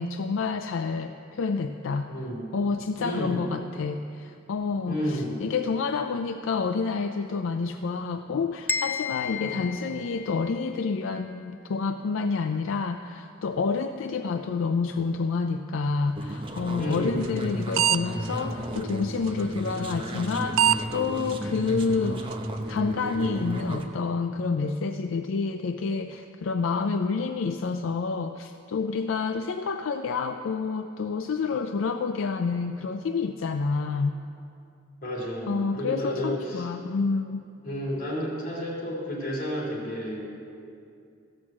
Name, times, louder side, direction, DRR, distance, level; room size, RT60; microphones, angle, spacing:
voice 1, 0.0-2.1 2.5-22.3 22.7-34.1 35.5-37.4, left 4 dB, 75° left, 7 dB, 0.4 m, -28 dB
voice 2, 2.1-2.5 3.0-3.5 4.9-5.4 9.4-9.7 16.8-17.3 35.0-36.7 37.6-40.2, equal, 45° left, -4 dB, 3.4 m, -31 dB
sound 1, 8.7-10.7, left 6 dB, 10° left, 0.3 m, -32 dB
sound 2, 16.1-23.9, right 1 dB, 25° right, 0.9 m, -34 dB
sound 3, 17.2-17.5 17.7-18.0 18.3-18.4 19.3-19.4 20.3-20.4 20.6-20.8 21.3-21.4 21.8-21.9 22.3-22.4, right 10 dB, 85° right, 0.3 m, -21 dB
14.5 x 6.3 x 7.4 m, 2.5 s
head